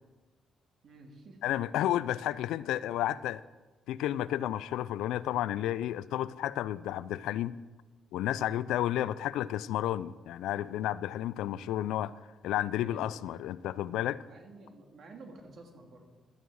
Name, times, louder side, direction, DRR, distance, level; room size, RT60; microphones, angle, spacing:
voice 1, 0.8-1.4 8.4-8.7 12.8-13.4 14.2-16.1, right 3 dB, 55° right, 3 dB, 2.2 m, -51 dB
voice 2, 1.4-3.4 3.9-7.5 8.1-12.1 12.4-14.2, left 12 dB, 90° left, 18 dB, 0.3 m, -32 dB
12.5 x 9.2 x 4.7 m, 1.3 s
cardioid pair, 90°, 0 cm